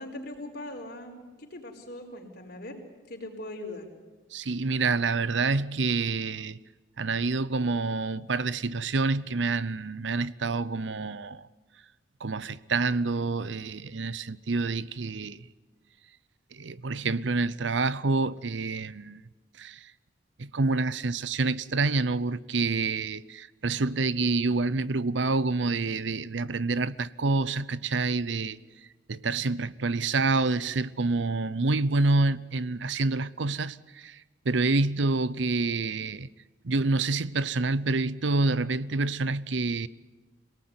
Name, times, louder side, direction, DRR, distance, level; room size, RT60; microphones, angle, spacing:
voice 1, 0.0-2.8 3.1-3.9, left 1 dB, 55° left, 4.6 m, -40 dB
voice 2, 4.3-6.6 7.0-11.5 12.2-15.5 16.5-19.2 19.6-19.9 20.4-28.6 29.1-36.3 36.6-39.9, right 3 dB, 70° right, 0.7 m, -27 dB
27.0 x 18.5 x 9.6 m
head